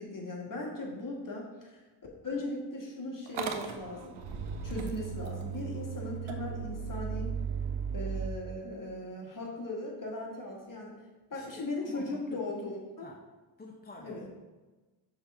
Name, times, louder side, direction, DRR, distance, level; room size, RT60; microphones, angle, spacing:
voice 1, 0.0-1.8 2.2-4.2 4.6-7.4 7.9-10.9 11.3-13.1 14.0-14.3, left 2 dB, 45° left, -1 dB, 1.8 m, -38 dB
Motor vehicle (road) / Engine starting, 3.3-8.3, right 6 dB, 85° right, 0.7 m, -36 dB
voice 2, 11.3-12.4 13.0-13.2 13.6-14.3, left 2 dB, 20° left, 2 dB, 0.6 m, -48 dB
5.8 x 3.5 x 5.4 m, 1.2 s
cardioid pair, 60°, 46 cm